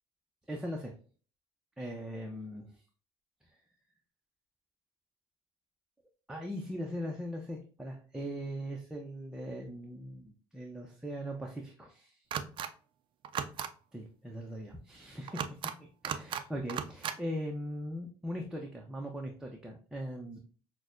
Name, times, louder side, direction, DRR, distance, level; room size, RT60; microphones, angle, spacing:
voice 1, 0.5-0.9 1.8-2.7 6.3-12.2 13.9-20.4, equal, 5° right, 0 dB, 0.7 m, -40 dB
sound 1, 12.3-12.7 13.2-13.7 15.3-15.7 16.0-16.4 16.7-17.2, right 8 dB, 50° right, 0.5 m, -36 dB
6.0 x 2.2 x 2.5 m, 0.39 s
supercardioid pair, 90°, 11 cm